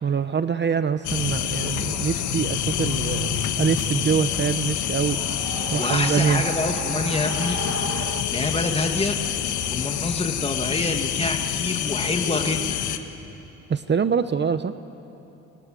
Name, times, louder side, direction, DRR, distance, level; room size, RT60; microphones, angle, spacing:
voice 1, 0.0-5.2 5.7-6.4 13.7-14.7, right 6 dB, 35° right, 11 dB, 0.9 m, -24 dB
sound 1, 0.7-4.7 5.0-8.2, right 12 dB, 85° right, 1.2 m, -38 dB
sound 2, 1.0-13.0, left 9 dB, 75° left, 1.5 m, -27 dB
voice 2, 5.8-7.6 8.3-9.2 9.7-12.8, left 2 dB, 20° left, 5 dB, 1.8 m, -27 dB
28.5 x 26.5 x 7.7 m, 3.0 s
cardioid pair, 90°, 30 cm